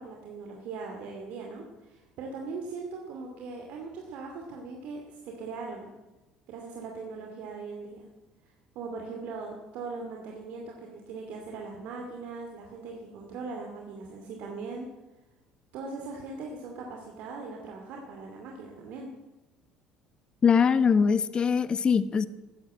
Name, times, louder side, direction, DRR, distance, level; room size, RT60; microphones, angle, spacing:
voice 1, 0.0-5.9 6.5-8.0 8.7-14.9 15.7-19.1, right 4 dB, 60° right, 1 dB, 2.5 m, -40 dB
voice 2, 20.4-22.3, left 6 dB, 35° left, 15 dB, 1.0 m, -22 dB
13.5 x 10.0 x 8.9 m, 1.1 s
hypercardioid pair, 65°, 3 cm